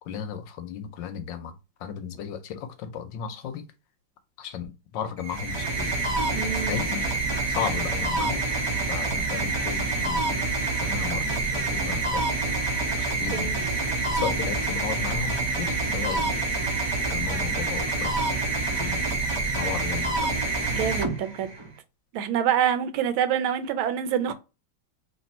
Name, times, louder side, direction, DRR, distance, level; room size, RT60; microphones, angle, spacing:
voice 1, 0.0-3.7 4.4-5.9 6.5-7.0 7.5-8.4 8.8-10.4 10.8-11.2 11.5-12.2 13.2-13.6 14.1-16.3 17.1-18.3 18.7-19.1 19.5-20.3, left 8 dB, 75° left, 1.3 m, -34 dB
sound 1, 5.2-21.7, right 3 dB, 45° right, 0.3 m, -27 dB
voice 2, 6.3-6.8 13.3-13.5 20.7-21.5 22.1-24.3, right 9 dB, 80° right, 1.4 m, -26 dB
3.3 x 2.9 x 4.2 m
omnidirectional pair, 2.2 m